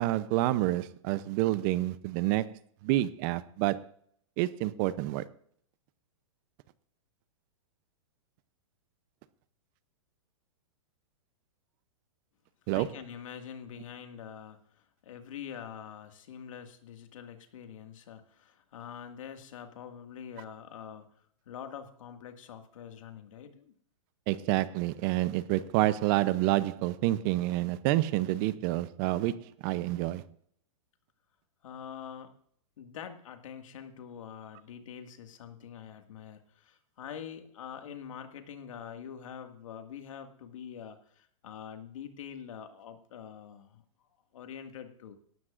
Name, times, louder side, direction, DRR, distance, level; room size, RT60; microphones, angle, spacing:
voice 1, 0.0-2.5 2.8-3.9 4.4-5.2 12.7-12.9 24.3-30.2, right 16 dB, 40° right, 0.6 m, -28 dB
voice 2, 12.7-21.1 21.5-23.7 31.6-32.3 32.8-43.8 44.3-45.2, left 8 dB, 70° left, 2.0 m, -45 dB
17.5 x 12.5 x 2.5 m
hypercardioid pair, 135°, 17 cm